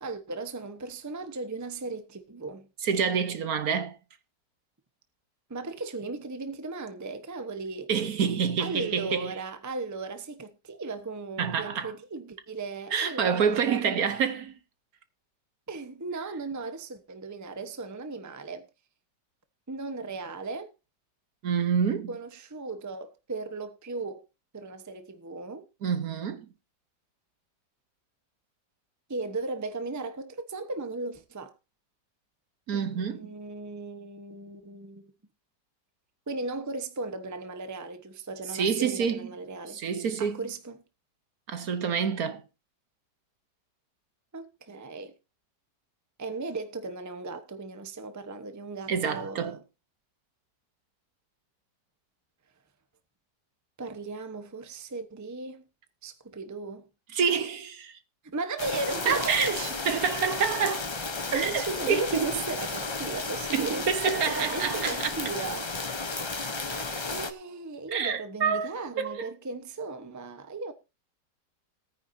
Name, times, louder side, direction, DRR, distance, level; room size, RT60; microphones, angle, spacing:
voice 1, 0.0-2.7 5.5-7.9 8.6-14.0 15.7-18.6 19.7-20.7 22.1-24.2 24.5-25.6 29.1-31.5 32.7-35.1 36.3-39.8 40.2-40.8 44.3-45.1 46.2-49.6 53.8-55.6 56.0-56.9 58.2-59.7 61.3-65.7 67.1-70.7, right 3 dB, 15° right, 0.8 m, -36 dB
voice 2, 2.8-4.0 7.9-9.3 11.4-11.9 12.9-14.5 21.4-22.1 25.8-26.5 32.7-33.3 38.5-39.3 39.7-40.4 41.5-42.4 48.9-49.6 57.1-58.0 59.1-59.6 59.9-60.9 61.3-62.4 63.5-65.1 66.7-66.8 67.9-69.3, right 6 dB, 60° right, 1.3 m, -27 dB
sound 1, 58.6-67.3, left 3 dB, 35° left, 0.4 m, -33 dB
18.5 x 9.4 x 2.7 m
omnidirectional pair, 1.9 m